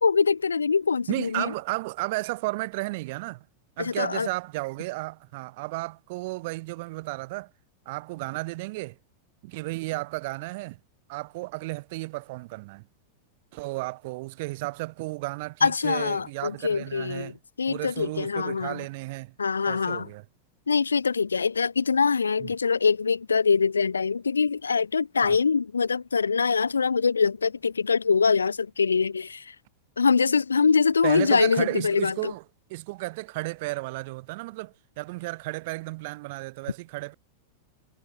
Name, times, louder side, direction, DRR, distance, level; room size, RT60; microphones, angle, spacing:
voice 1, 0.0-1.5 3.8-4.3 15.6-17.3 17.6-18.8 19.4-20.1 20.7-29.6 30.0-32.3, left 5 dB, 75° left, 0.5 m, -24 dB
voice 2, 1.1-3.5 3.8-7.5 7.9-9.0 9.4-10.8 11.1-12.8 13.5-17.4 17.7-19.3 19.7-20.2 22.4-22.5 25.2-25.4 31.0-32.4 32.7-37.1, right 22 dB, 50° right, 0.6 m, -33 dB
figure-of-eight pair, 90°, 0 cm